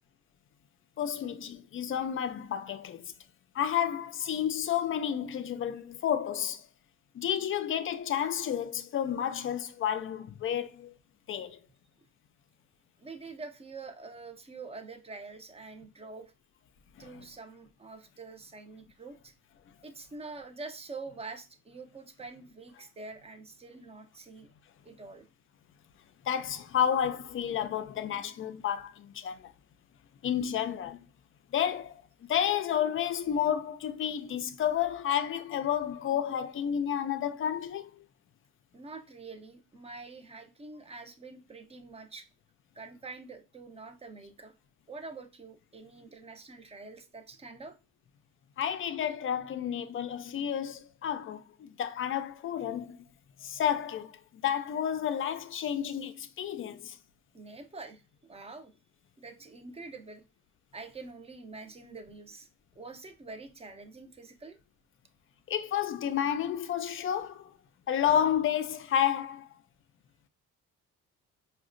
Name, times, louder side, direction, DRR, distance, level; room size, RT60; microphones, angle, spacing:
voice 1, 1.0-3.1 3.5-6.6 7.1-10.9 11.3-11.6 26.3-29.5 30.2-31.0 31.5-32.0 32.3-37.9 48.6-53.0 53.4-57.0 65.5-67.5 67.9-69.5, left 9 dB, 40° left, 0.4 m, -31 dB
voice 2, 13.0-16.3 17.0-19.3 19.8-24.5 24.8-25.3 38.7-42.3 42.7-44.5 44.9-47.7 57.3-58.0 58.3-58.7 59.2-60.2 60.7-62.5 62.8-64.6, right 3 dB, 20° right, 0.6 m, -46 dB
4.6 x 2.1 x 2.5 m
cardioid pair, 90°, 32 cm